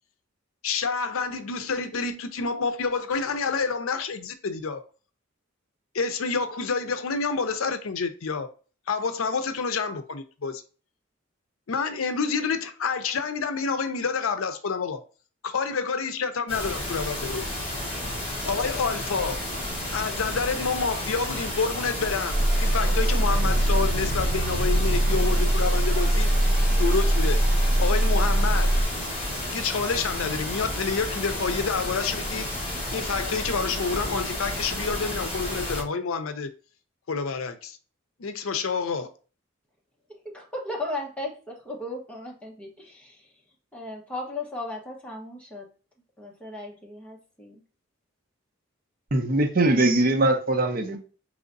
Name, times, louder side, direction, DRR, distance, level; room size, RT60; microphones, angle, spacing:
voice 1, 0.6-4.8 5.9-8.5 8.9-10.6 11.7-15.0 15.4-17.4 18.4-19.4 19.9-22.3 22.6-26.3 26.8-27.4 27.8-28.7 29.5-32.5 32.9-36.5 37.1-37.8 38.2-39.1, left 5 dB, 80° left, 0.5 m, -28 dB
sound 1, 16.5-35.8, left 1 dB, 30° left, 1.4 m, -32 dB
sound 2, 22.3-28.8, right 1 dB, 85° right, 0.8 m, -22 dB
voice 2, 40.3-43.3 43.7-45.7 46.2-47.6, left 2 dB, 5° left, 0.9 m, -36 dB
voice 3, 49.1-51.0, right 2 dB, 40° right, 0.6 m, -21 dB
4.8 x 3.1 x 2.6 m
head